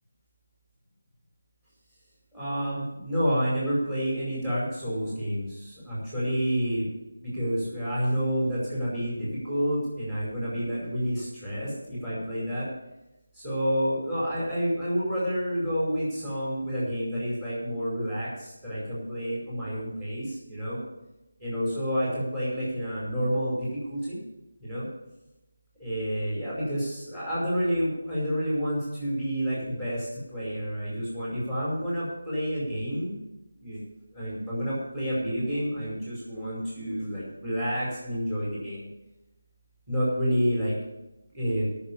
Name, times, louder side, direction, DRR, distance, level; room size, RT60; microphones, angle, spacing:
voice 1, 2.3-6.9 7.2-12.7 13.3-20.8 21.4-24.2 24.6-24.9 25.8-33.2 33.6-33.8 34.1-38.9 39.9-40.7 41.3-41.7, equal, 15° right, -8 dB, 5.2 m, -29 dB
13.0 x 6.8 x 7.3 m, 0.96 s
figure-of-eight pair, 165°, 0 cm